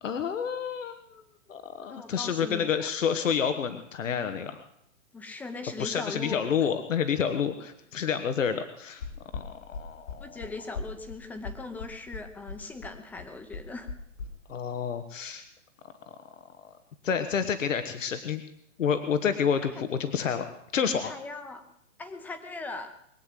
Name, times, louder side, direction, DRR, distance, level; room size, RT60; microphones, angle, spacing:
voice 1, 0.0-1.0 1.5-4.6 5.8-9.0 9.3-10.4 14.5-15.4 16.6-16.7 17.0-18.4 18.8-20.5 20.7-21.1, left 7 dB, 90° left, 9 dB, 1.4 m, -29 dB
voice 2, 1.9-2.9 5.1-6.5 10.1-13.9 21.0-21.6 22.0-23.0, left 3 dB, 5° left, 8 dB, 0.7 m, -39 dB
sound 1, 9.0-14.3, left 4 dB, 75° left, 4.5 m, -39 dB
22.0 x 8.3 x 7.6 m, 0.73 s
hypercardioid pair, 155°, 38 cm